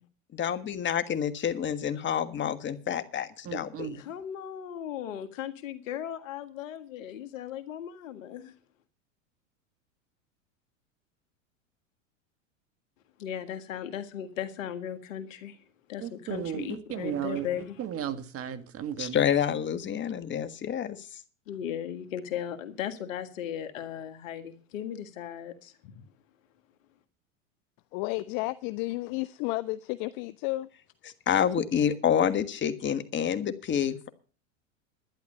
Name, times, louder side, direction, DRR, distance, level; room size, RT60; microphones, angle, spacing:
voice 1, 0.3-4.0 19.0-21.2 31.0-34.1, left 9 dB, 30° left, 1.5 m, -28 dB
voice 2, 3.5-4.0 16.0-19.2, right 9 dB, 35° right, 1.7 m, -35 dB
voice 3, 4.0-8.5 13.2-15.6 15.9-17.8 21.5-26.0, left 10 dB, 70° left, 1.9 m, -37 dB
voice 4, 27.9-30.7, left 20 dB, 45° left, 0.6 m, -32 dB
12.0 x 10.5 x 6.7 m
hypercardioid pair, 100°, 40 cm